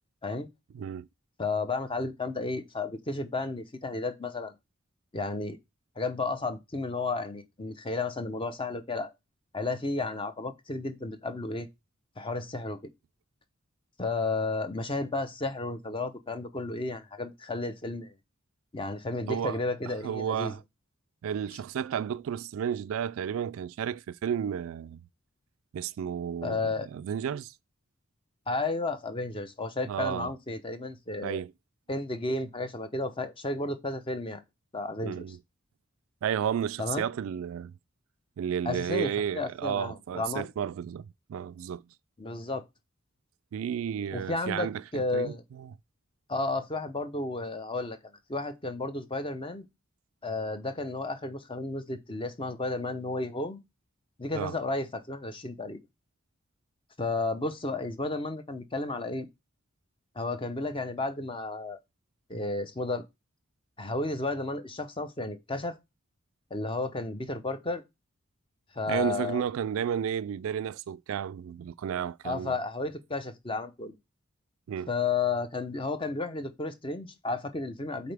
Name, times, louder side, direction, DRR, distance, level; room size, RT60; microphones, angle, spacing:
voice 1, 0.7-1.1 19.3-19.6 19.9-20.6 21.2-25.1 25.7-27.5 29.9-30.3 31.2-31.5 35.0-35.4 36.2-37.7 38.4-41.8 43.5-45.7 54.3-54.6 68.9-72.5 74.7-74.9, right 8 dB, 75° right, 0.3 m, -32 dB
voice 2, 1.4-4.5 5.1-5.6 6.0-9.1 9.5-11.7 12.2-12.8 14.0-18.1 18.7-20.5 26.4-26.9 28.5-31.4 31.9-34.4 34.7-35.2 36.8-37.1 38.7-40.5 42.2-42.6 44.1-44.7 44.9-45.4 46.3-48.0 48.3-49.6 50.2-53.6 54.2-55.8 57.0-59.3 60.2-61.8 62.3-63.0 63.8-65.8 66.5-67.8 68.8-69.4 72.2-73.9 74.9-78.1, left 3 dB, 25° left, 0.7 m, -32 dB
8.4 x 4.0 x 3.4 m
head